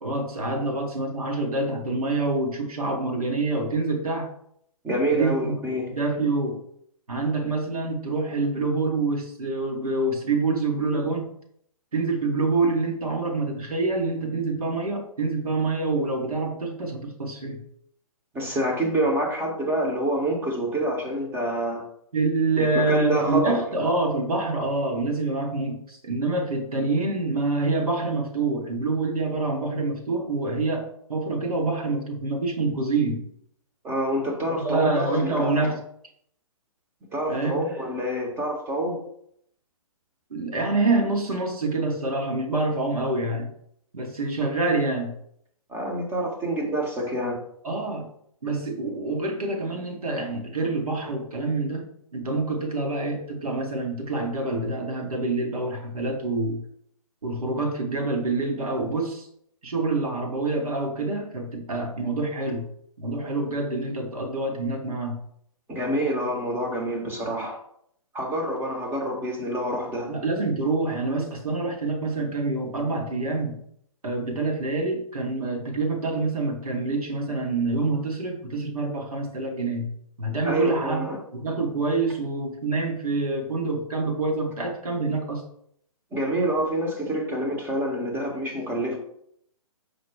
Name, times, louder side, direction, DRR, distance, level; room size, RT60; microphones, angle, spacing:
voice 1, 0.0-4.3 5.1-5.5 5.9-6.6 7.1-11.3 11.9-17.6 22.1-33.2 34.6-35.8 37.3-37.6 40.3-43.5 43.9-45.1 47.6-48.1 48.4-56.6 57.2-59.3 59.6-62.7 63.0-65.2 70.1-73.6 74.0-79.9 80.2-81.1 81.3-85.4, right 3 dB, 80° right, 2 dB, 1.3 m, -26 dB
voice 2, 4.8-5.9 18.3-21.8 22.7-23.6 33.8-35.7 37.1-39.0 45.7-47.4 65.7-67.6 68.1-70.1 80.4-81.2 86.1-89.0, right 1 dB, 10° right, 0 dB, 0.8 m, -27 dB
4.8 x 2.2 x 4.7 m, 0.69 s
figure-of-eight pair, 135°, 18 cm